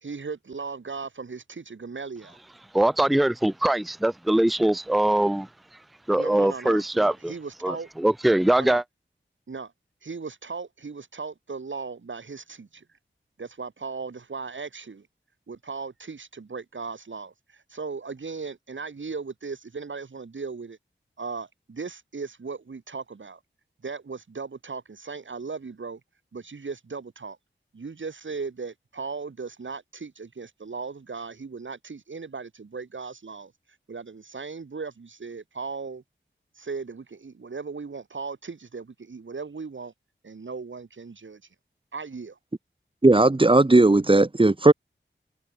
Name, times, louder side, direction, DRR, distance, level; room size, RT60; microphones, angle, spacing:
voice 1, 0.0-2.4 6.1-7.9 8.6-8.8 9.5-9.7 10.0-12.8 13.4-15.1 15.5-20.8 21.2-23.4 23.8-26.0 26.3-27.4 27.7-33.5 33.9-36.0 36.5-39.9 40.2-41.4 41.9-42.4, right 4 dB, 75° right, 2.8 m, -37 dB
voice 2, 2.7-5.5 6.1-7.3 7.6-8.8, right 1 dB, ahead, 0.4 m, -22 dB
voice 3, 43.0-44.7, right 2 dB, 25° right, 1.3 m, -17 dB
wide cardioid pair, 90°, 20 cm